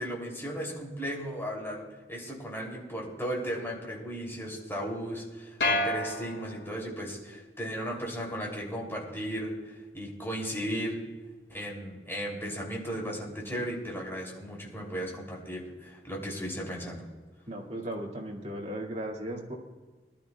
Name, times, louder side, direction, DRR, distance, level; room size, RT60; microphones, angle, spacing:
voice 1, 0.0-11.0 11.5-17.0, equal, 15° left, -2 dB, 3.1 m, -36 dB
sound 1, 5.6-7.0, left 1 dB, 75° left, 4.1 m, -30 dB
voice 2, 17.5-19.5, right 1 dB, 40° right, -2 dB, 2.3 m, -36 dB
21.0 x 12.5 x 2.4 m, 1.4 s
head